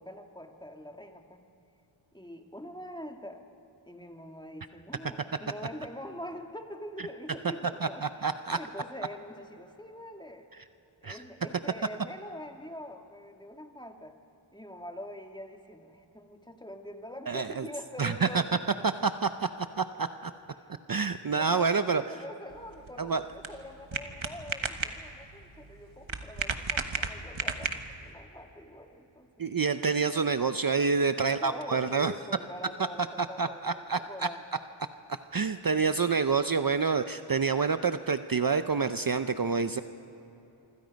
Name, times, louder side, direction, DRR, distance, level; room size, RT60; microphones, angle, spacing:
voice 1, 0.0-1.5 2.1-3.4 3.8-8.3 8.5-10.5 11.0-14.2 14.5-18.6 20.6-20.7 21.2-29.3 31.2-34.4, left 1 dB, 10° left, 4 dB, 1.8 m, -44 dB
voice 2, 7.8-8.6 11.0-11.2 17.3-17.6 18.0-18.4 19.0-19.5 19.8-20.3 20.9-22.0 23.0-23.2 29.4-32.1 33.4-34.0 35.3-39.8, right 5 dB, 45° right, 10 dB, 0.6 m, -27 dB
sound 1, 22.5-28.1, right 4 dB, 70° right, 1.4 m, -35 dB
26.5 x 25.0 x 5.3 m, 3.0 s
wide cardioid pair, 60°, 48 cm